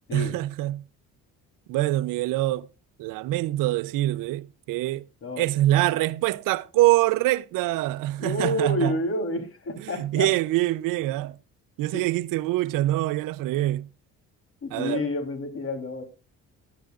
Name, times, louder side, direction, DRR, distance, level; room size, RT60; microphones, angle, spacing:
voice 1, 0.1-0.8 1.7-2.7 3.0-5.1 5.4-9.0 9.8-11.4 11.8-13.9 14.7-15.0, right 16 dB, 85° right, 0.6 m, -25 dB
voice 2, 8.2-10.3 11.9-12.0 14.6-16.0, left 1 dB, 45° left, 3.5 m, -29 dB
18.5 x 11.5 x 2.5 m
cardioid pair, 140°, 32 cm